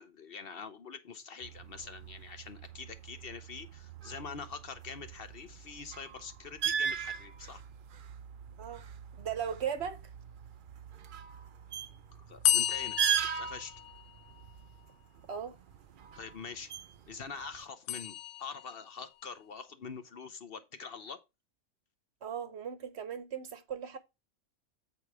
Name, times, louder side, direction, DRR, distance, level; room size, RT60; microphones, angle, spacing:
voice 1, 0.0-7.6 12.1-13.0 13.3-13.7 16.2-16.7 17.1-21.2, left 5 dB, 50° left, 0.7 m, -45 dB
sound 1, 1.4-17.6, right 7 dB, 70° right, 0.4 m, -39 dB
voice 2, 9.1-10.0 15.3-15.6 22.2-24.0, right 8 dB, 55° right, 1.0 m, -37 dB
sound 2, 12.4-14.4 17.9-18.9, left 13 dB, 75° left, 1.0 m, -32 dB
8.3 x 4.5 x 4.7 m
omnidirectional pair, 1.5 m